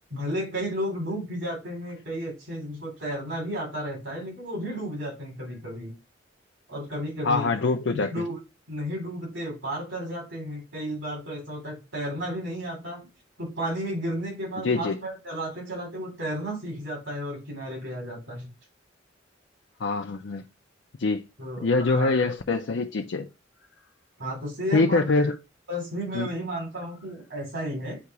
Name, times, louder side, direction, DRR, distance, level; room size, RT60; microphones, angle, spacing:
voice 1, 0.1-5.9 6.7-7.5 7.9-8.4 8.7-13.1 13.4-18.5 21.4-22.1 24.2-25.3 25.7-28.0, equal, 70° right, 3.4 m, -33 dB
voice 2, 7.2-8.1 14.6-15.0 19.8-20.4 21.0-21.3 21.6-23.3 24.7-25.4 26.1-26.3, left 3 dB, 70° left, 0.5 m, -24 dB
8.2 x 2.9 x 4.7 m
head